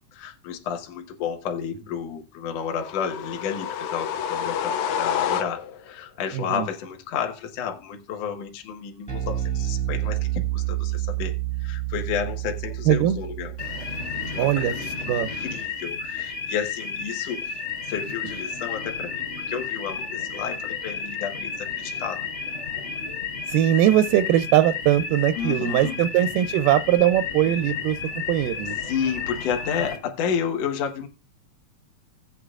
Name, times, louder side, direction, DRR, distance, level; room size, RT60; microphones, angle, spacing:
voice 1, 0.0-11.3 11.6-13.6 14.3-17.6 17.9-22.3 25.4-26.0 28.8-31.1, left 7 dB, 60° left, 1.9 m, -31 dB
sound 1, 2.7-5.9, left 8 dB, 85° left, 1.6 m, -28 dB
voice 2, 6.3-6.7 12.9-13.2 14.4-15.3 23.5-28.0 28.3-28.8, right 12 dB, 80° right, 2.1 m, -21 dB
Bass guitar, 9.1-15.5, right 14 dB, 5° left, 0.8 m, -30 dB
sound 2, 13.6-30.0, left 5 dB, 35° left, 2.9 m, -32 dB
17.0 x 8.2 x 2.4 m
omnidirectional pair, 4.2 m